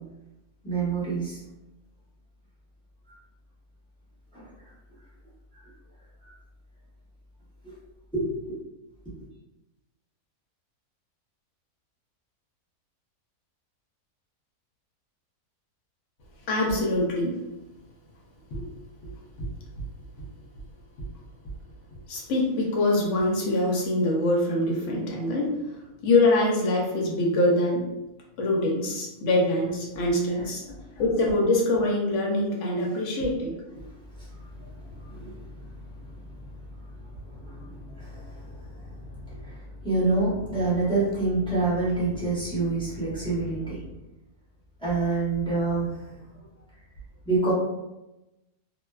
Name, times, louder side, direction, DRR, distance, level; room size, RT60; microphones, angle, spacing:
voice 1, 0.6-1.4 4.3-4.4 8.1-8.5 34.2-34.3 34.6-35.5 36.0-36.2 37.3-43.8 44.8-46.2 47.2-47.5, right 3 dB, 5° left, -10 dB, 0.5 m, -28 dB
voice 2, 16.5-17.4 18.5-18.7 19.4-19.5 22.1-25.6 26.0-27.9 28.4-33.6, left 2 dB, 65° left, -1 dB, 0.8 m, -24 dB
2.5 x 2.1 x 2.2 m, 0.95 s
omnidirectional pair, 1.7 m